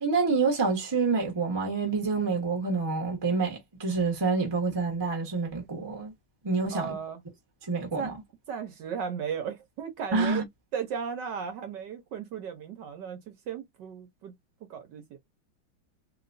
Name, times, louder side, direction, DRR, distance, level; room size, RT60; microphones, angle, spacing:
voice 1, 0.0-6.1 6.4-6.9 7.7-8.1 10.1-10.4, right 4 dB, 20° right, 0.7 m, -27 dB
voice 2, 6.7-7.2 8.0-8.1 8.5-10.4 10.7-14.3 14.7-15.2, right 7 dB, 65° right, 1.2 m, -35 dB
3.0 x 3.0 x 2.5 m
omnidirectional pair, 2.3 m